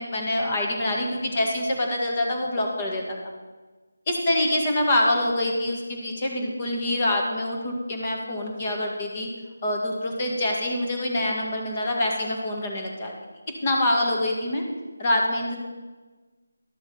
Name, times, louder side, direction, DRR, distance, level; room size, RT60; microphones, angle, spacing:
voice 1, 0.0-3.3 4.1-9.3 9.6-13.1 13.6-14.6 15.0-15.6, left 1 dB, 30° left, 1 dB, 1.8 m, -25 dB
11.5 x 6.9 x 5.5 m, 1.3 s
figure-of-eight pair, 165°, 0 cm